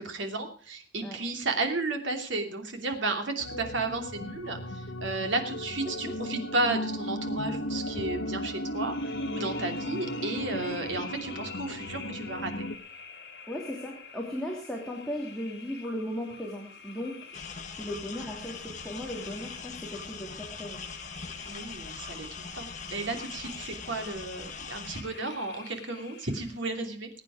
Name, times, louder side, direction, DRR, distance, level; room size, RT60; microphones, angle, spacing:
voice 1, 0.0-12.6 21.5-27.1, right 2 dB, 75° right, 5 dB, 2.8 m, -33 dB
sound 1, 3.4-12.7, left 1 dB, 90° left, 1.3 m, -36 dB
sound 2, 8.7-26.6, left 5 dB, 60° left, 2.7 m, -48 dB
voice 2, 13.5-17.3 17.8-20.8, left 1 dB, 5° left, -1 dB, 2.7 m, -37 dB
sound 3, 17.3-25.0, left 5 dB, 40° left, 1.6 m, -42 dB
21.0 x 9.1 x 4.8 m, 0.42 s
head